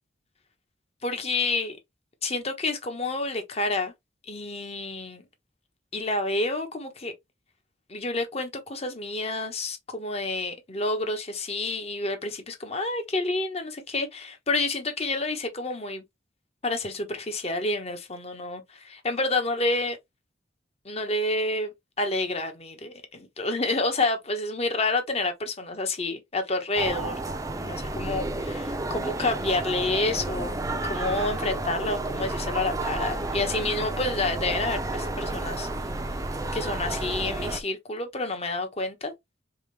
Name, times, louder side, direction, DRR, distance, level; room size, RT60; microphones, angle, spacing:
voice 1, 1.0-1.8 2.2-3.9 4.3-5.2 5.9-7.1 7.9-16.0 16.6-20.0 20.8-27.2 27.6-35.7 36.5-39.1, left 2 dB, 35° left, 1.1 m, -29 dB
sound 1, 26.8-37.6, right 2 dB, 20° right, 0.6 m, -31 dB
3.7 x 3.6 x 3.3 m
head